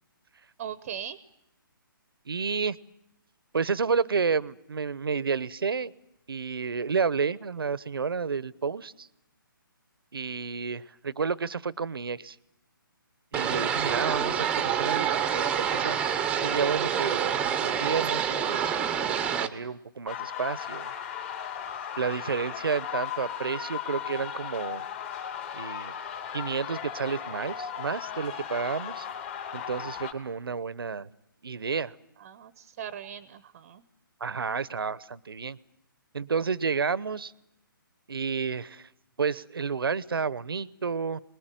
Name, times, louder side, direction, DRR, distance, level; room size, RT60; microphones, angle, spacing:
voice 1, 0.6-1.2 32.2-33.8, right 9 dB, 35° right, 15 dB, 0.8 m, -39 dB
voice 2, 2.3-2.8 3.5-5.9 6.3-9.1 10.1-12.4 13.3-18.7 19.0-20.9 22.0-24.8 25.5-25.9 26.3-29.1 29.5-31.1 31.4-31.9 34.2-35.6 36.1-37.3 38.1-38.9 39.2-41.2, right 5 dB, 85° right, 20 dB, 0.9 m, -31 dB
sound 1, 13.3-19.5, right 8 dB, 10° right, 0.9 m, -27 dB
sound 2, 20.1-30.1, left 8 dB, 35° left, 2.8 m, -36 dB
25.5 x 20.5 x 9.1 m, 0.86 s
hypercardioid pair, 155°, 12 cm